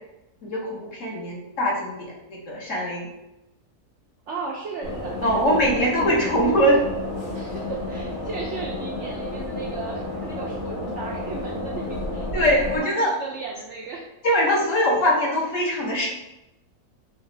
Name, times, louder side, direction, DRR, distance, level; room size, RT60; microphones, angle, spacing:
voice 1, 0.4-3.1 5.2-6.8 12.3-13.1 14.2-16.1, equal, 55° left, -3 dB, 1.2 m, -22 dB
voice 2, 4.3-6.1 7.3-14.2, right 4 dB, 65° right, -2 dB, 0.7 m, -36 dB
sound 1, 4.8-12.8, left 2 dB, 80° left, 1.8 m, -31 dB
4.9 x 2.4 x 3.2 m, 0.94 s
omnidirectional pair, 1.7 m